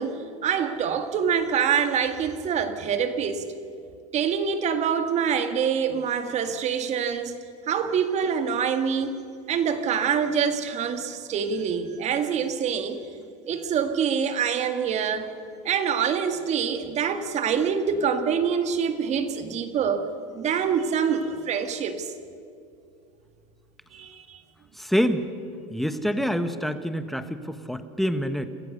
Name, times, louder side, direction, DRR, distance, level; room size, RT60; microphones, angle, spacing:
voice 1, 0.0-3.5 4.1-7.4 7.7-9.2 9.5-13.0 13.5-15.3 15.6-22.1 23.9-24.4, right 7 dB, 40° right, 8 dB, 1.9 m, -25 dB
voice 2, 24.7-25.3 25.7-28.5, equal, ahead, 10 dB, 1.3 m, -26 dB
26.5 x 15.0 x 6.7 m, 2.4 s
hypercardioid pair, 100°, 18 cm